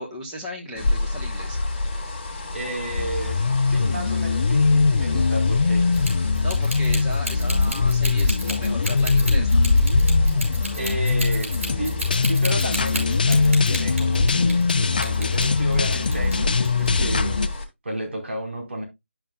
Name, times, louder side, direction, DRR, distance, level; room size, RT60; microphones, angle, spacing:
voice 1, 0.0-1.6 6.4-9.7, equal, 10° right, 1.1 m, -36 dB
sound 1, 0.8-17.6, left 2 dB, 20° left, 1.6 m, -26 dB
voice 2, 2.5-5.9 10.7-17.4 17.8-18.8, right 1 dB, 60° right, 4.4 m, -32 dB
sound 2, 3.0-17.5, left 4 dB, 40° left, 0.6 m, -22 dB
sound 3, 5.9-14.7 15.0-16.4 16.6-16.9, right 1 dB, 80° right, 5.3 m, -32 dB
12.0 x 5.8 x 2.3 m
figure-of-eight pair, 165°, 7 cm